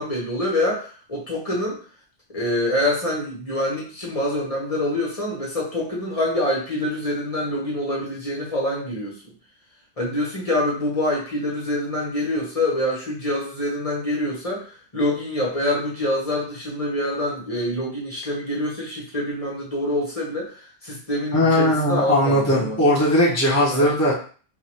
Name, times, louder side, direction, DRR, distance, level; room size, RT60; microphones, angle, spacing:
voice 1, 0.0-1.8 2.3-9.1 10.0-20.6 20.8-22.8 23.7-24.0, left 1 dB, 30° left, -4 dB, 1.3 m, -25 dB
voice 2, 21.3-24.1, left 1 dB, 15° left, -6 dB, 0.9 m, -19 dB
4.6 x 2.4 x 3.0 m, 0.41 s
omnidirectional pair, 1.2 m